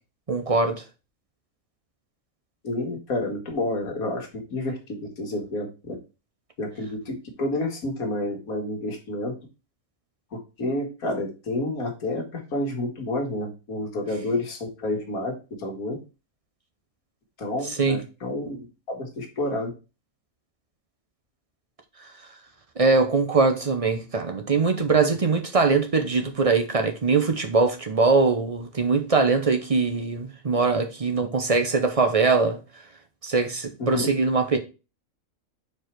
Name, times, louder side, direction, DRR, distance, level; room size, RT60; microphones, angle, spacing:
voice 1, 0.3-0.8 17.6-18.0 22.8-32.6 33.2-34.6, right 4 dB, 35° right, 0.6 m, -22 dB
voice 2, 2.6-6.0 6.6-9.4 10.6-16.0 17.4-19.7 33.8-34.1, left 2 dB, 85° left, 2.0 m, -29 dB
4.9 x 4.5 x 4.5 m
omnidirectional pair, 1.5 m